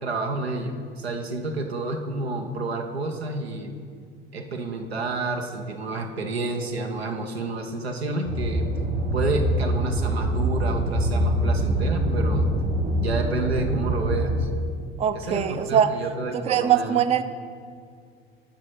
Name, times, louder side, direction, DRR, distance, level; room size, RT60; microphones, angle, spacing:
voice 1, 0.0-3.7 4.3-8.7 9.1-12.5 13.0-14.5 15.1-17.0, right 3 dB, 85° right, 3 dB, 0.7 m, -29 dB
sound 1, 8.2-14.4, right 1 dB, 70° right, 1.5 m, -24 dB
voice 2, 15.0-15.9 16.3-17.2, right 9 dB, 20° right, 11 dB, 0.4 m, -22 dB
8.8 x 5.2 x 5.8 m, 2.2 s
figure-of-eight pair, 60°, 30 cm